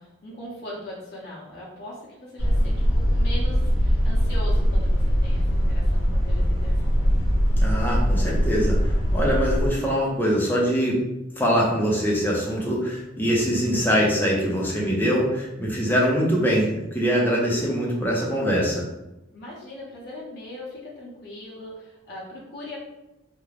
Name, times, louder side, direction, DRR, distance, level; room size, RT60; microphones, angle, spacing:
voice 1, 0.0-7.4 19.3-22.8, left 1 dB, 55° left, -6 dB, 0.7 m, -40 dB
sound 1, 2.4-9.7, equal, 90° left, 0.7 m, -21 dB
voice 2, 7.6-11.0 11.4-18.8, equal, 10° left, -4 dB, 0.6 m, -23 dB
2.4 x 2.1 x 3.2 m, 0.92 s
head